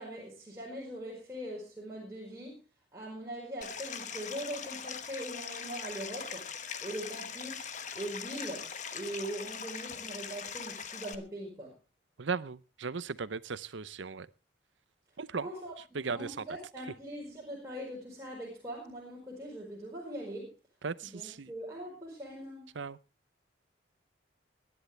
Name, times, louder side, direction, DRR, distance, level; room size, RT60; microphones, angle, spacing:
voice 1, 0.0-2.6 2.9-6.5 6.8-7.7 7.9-11.7 15.4-15.7 16.1-20.5 21.0-22.7, right 1 dB, 15° right, 4.9 m, -41 dB
Stream, 3.6-11.1, left 7 dB, 40° left, 1.1 m, -41 dB
voice 2, 12.2-14.3 15.2-15.5 15.9-16.4 20.8-21.5 22.8-23.0, right 5 dB, 80° right, 0.7 m, -37 dB
21.5 x 10.5 x 3.3 m
head